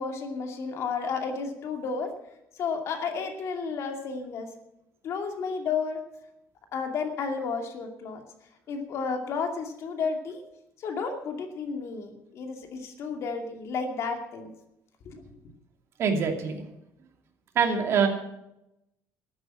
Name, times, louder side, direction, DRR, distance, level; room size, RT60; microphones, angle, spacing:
voice 1, 0.0-2.1 2.6-4.5 5.0-6.0 6.7-8.2 8.7-10.4 10.8-14.5 15.1-15.2, left 5 dB, 55° left, 4 dB, 2.4 m, -32 dB
voice 2, 16.0-16.6 17.5-18.1, right 6 dB, 50° right, 4 dB, 2.6 m, -24 dB
13.5 x 8.9 x 8.7 m, 0.86 s
cardioid pair, 140°, 6 cm